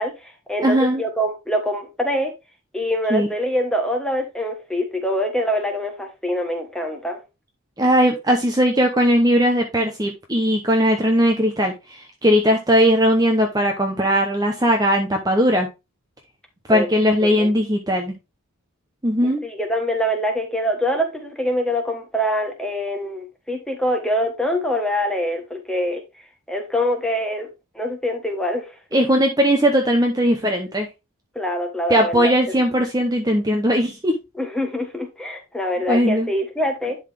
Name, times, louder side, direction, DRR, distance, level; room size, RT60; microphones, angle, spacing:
voice 1, 0.0-2.3 2.7-7.2 16.7-16.9 17.2-17.5 19.2-26.0 26.5-27.5 27.7-29.0 31.3-32.3 34.4-37.0, equal, 5° left, 1.4 m, -24 dB
voice 2, 0.6-1.0 3.1-3.3 7.8-15.7 16.7-18.1 19.0-19.4 28.9-30.9 31.9-34.1 35.9-36.3, equal, 15° right, 0.8 m, -19 dB
11.0 x 4.0 x 3.5 m
head